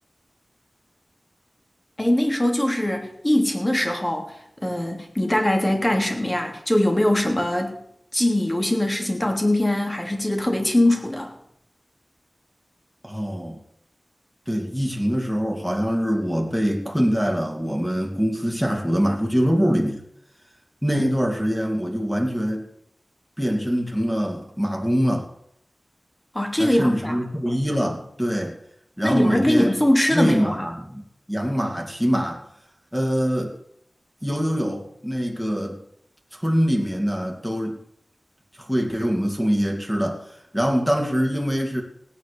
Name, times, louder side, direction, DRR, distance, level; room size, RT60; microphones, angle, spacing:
voice 1, 2.0-4.3 4.6-7.8 8.1-11.3 26.3-27.2 29.0-30.6, left 1 dB, 20° left, 3 dB, 2.9 m, -22 dB
voice 2, 13.0-13.6 14.5-20.0 20.8-22.7 23.4-25.3 26.6-28.6 29.0-29.7 30.1-32.4 32.9-33.5 34.2-35.8 36.3-37.8 38.6-41.8, equal, ahead, 1 dB, 2.6 m, -24 dB
17.0 x 9.4 x 6.8 m, 0.73 s
wide cardioid pair, 70°, 0 cm